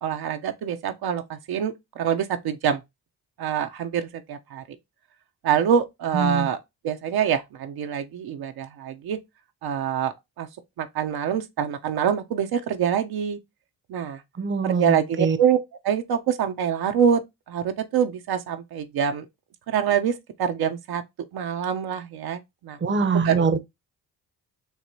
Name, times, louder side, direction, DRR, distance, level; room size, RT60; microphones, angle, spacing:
voice 1, 0.0-2.8 3.4-4.6 5.4-6.6 6.8-9.2 9.6-10.5 10.8-13.4 13.9-14.2 14.6-15.6 15.8-17.2 17.5-19.2 19.7-21.0 21.3-22.8 23.2-23.4, right 8 dB, 70° right, 0.8 m, -25 dB
voice 2, 6.1-6.5 14.4-15.4 22.8-23.6, right 5 dB, 30° right, 0.7 m, -23 dB
4.8 x 2.9 x 2.7 m
supercardioid pair, 65°, 39 cm